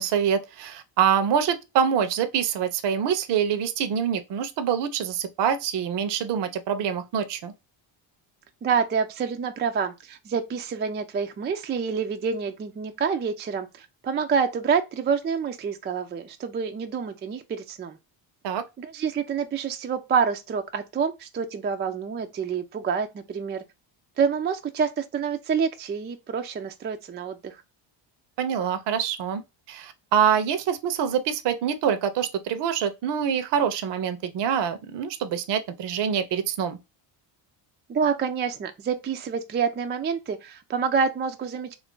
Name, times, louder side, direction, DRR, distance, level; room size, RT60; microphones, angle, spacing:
voice 1, 0.0-7.5 18.4-18.6 28.4-29.4 29.7-36.8, right 8 dB, 55° right, 0.7 m, -25 dB
voice 2, 8.6-18.0 18.8-23.6 24.2-27.6 37.9-41.7, right 6 dB, 25° right, 0.3 m, -27 dB
3.1 x 2.4 x 3.6 m
cardioid pair, 90°, 50 cm